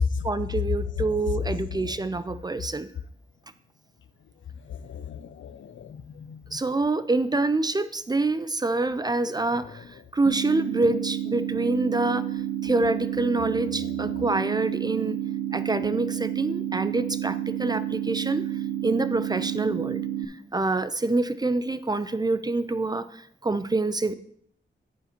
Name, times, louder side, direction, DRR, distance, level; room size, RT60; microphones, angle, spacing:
voice 1, 0.2-2.9 6.5-9.8 10.1-12.2 12.6-15.2 15.5-18.5 18.8-20.0 20.5-23.0 23.4-24.1, right 2 dB, 20° right, 13 dB, 0.3 m, -26 dB
voice 2, 1.7-2.0 4.7-6.6 13.4-13.5 13.8-14.2, left 8 dB, 75° left, 14 dB, 0.4 m, -38 dB
sound 1, 10.3-20.3, right 11 dB, 90° right, 0.8 m, -30 dB
9.2 x 8.1 x 3.0 m, 0.65 s
wide cardioid pair, 140°, 20 cm